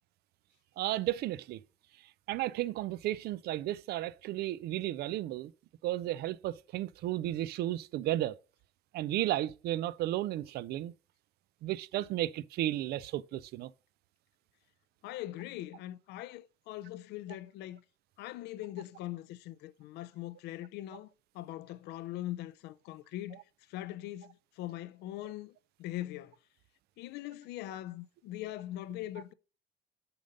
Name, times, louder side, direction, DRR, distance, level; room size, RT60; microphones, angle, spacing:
voice 1, 0.8-1.6 2.3-5.5 5.8-8.4 8.9-10.9 11.6-13.7, right 14 dB, 70° right, 0.4 m, -33 dB
voice 2, 15.0-17.8 18.2-21.1 21.3-23.4 23.7-26.3 27.0-29.3, left 14 dB, 85° left, 0.5 m, -41 dB
6.9 x 4.0 x 5.2 m
cardioid pair, 110°, 17 cm